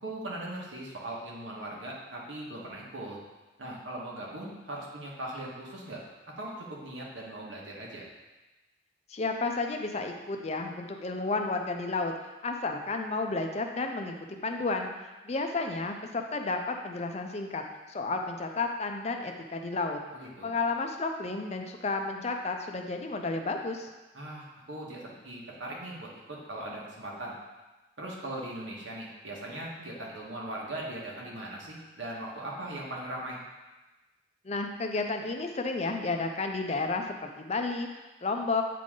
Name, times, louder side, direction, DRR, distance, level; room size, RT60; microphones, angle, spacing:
voice 1, 0.0-3.2 3.6-6.0 6.4-8.1 20.1-20.5 24.1-27.3 28.0-33.4, right 1 dB, 90° right, -3 dB, 1.5 m, -39 dB
voice 2, 9.1-12.2 12.4-14.1 14.4-14.9 15.3-20.0 20.4-23.9 34.4-37.9 38.2-38.6, left 3 dB, 35° left, 4 dB, 0.5 m, -32 dB
8.3 x 3.9 x 3.7 m, 1.1 s
head